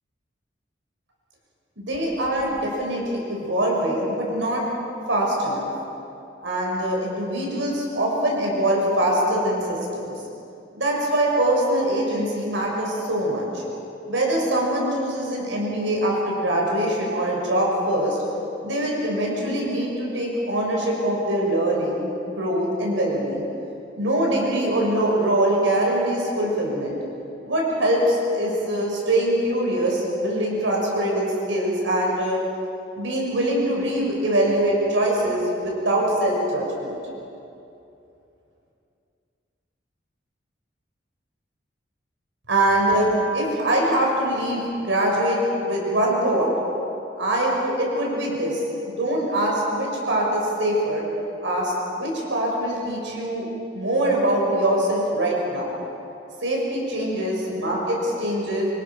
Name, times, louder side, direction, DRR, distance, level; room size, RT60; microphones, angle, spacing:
voice 1, 1.8-4.6 5.1-5.7 6.4-10.1 10.7-13.6 14.1-18.2 18.6-22.1 22.4-23.4 24.0-27.0 27.4-32.4 33.0-37.0 42.5-46.5 47.2-48.6 49.0-51.0 51.4-53.5 53.7-55.7 56.4-58.7, right 1 dB, 75° right, -2 dB, 6.3 m, -23 dB
28.5 x 26.5 x 6.2 m, 2.7 s
head